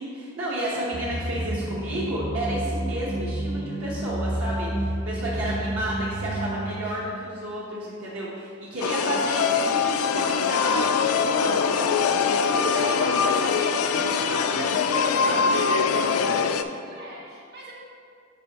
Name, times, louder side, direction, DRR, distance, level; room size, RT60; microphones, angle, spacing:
voice 1, 0.0-12.1 12.4-15.5, right 1 dB, 70° right, -7 dB, 1.0 m, -32 dB
sound 1, 0.9-6.7, right 1 dB, 25° right, 0.5 m, -30 dB
sound 2, 8.8-16.6, left 6 dB, 80° left, 0.3 m, -23 dB
voice 2, 16.2-17.7, right 2 dB, 50° right, -4 dB, 1.4 m, -46 dB
8.7 x 5.2 x 2.9 m, 2.3 s
head